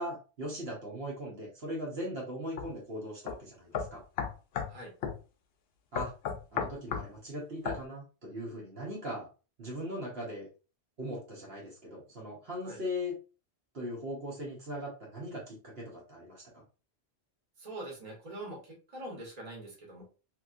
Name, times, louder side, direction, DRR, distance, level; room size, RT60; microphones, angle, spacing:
voice 1, 0.0-4.0 5.9-6.1 6.5-9.3 9.6-10.5 11.0-13.1 13.7-16.6, equal, 65° right, -4 dB, 1.3 m, -39 dB
sound 1, 2.6-2.7 3.3-3.4 3.7-4.7 5.0-5.2 6.0-7.1 7.7-7.8, left 7 dB, 70° left, 0.8 m, -34 dB
voice 2, 17.6-20.0, right 1 dB, 35° right, -2 dB, 1.3 m, -43 dB
3.0 x 2.8 x 2.5 m, 0.33 s
omnidirectional pair, 1.1 m